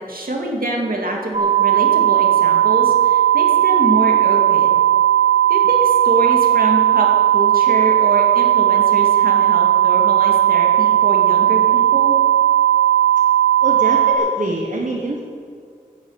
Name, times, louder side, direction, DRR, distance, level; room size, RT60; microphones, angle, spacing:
voice 1, 0.1-4.7 5.5-12.2, right 1 dB, 85° right, -1 dB, 2.3 m, -25 dB
sound 1, 1.3-14.1, right 11 dB, 45° right, 2.1 m, -15 dB
voice 2, 13.6-15.2, right 2 dB, 65° right, -1 dB, 1.5 m, -24 dB
11.5 x 9.9 x 8.1 m, 2.3 s
wide cardioid pair, 50°, 15 cm